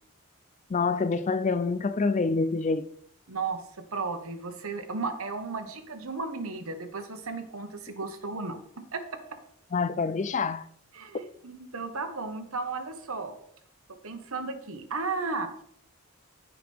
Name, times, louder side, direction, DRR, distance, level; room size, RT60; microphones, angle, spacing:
voice 1, 0.7-2.9 9.7-10.6, left 4 dB, 30° left, 0.3 m, -26 dB
voice 2, 3.3-3.6 3.9-8.6 8.9-9.0 10.9-13.3 14.0-15.6, right 4 dB, 70° right, 1.2 m, -34 dB
15.0 x 5.0 x 3.4 m
head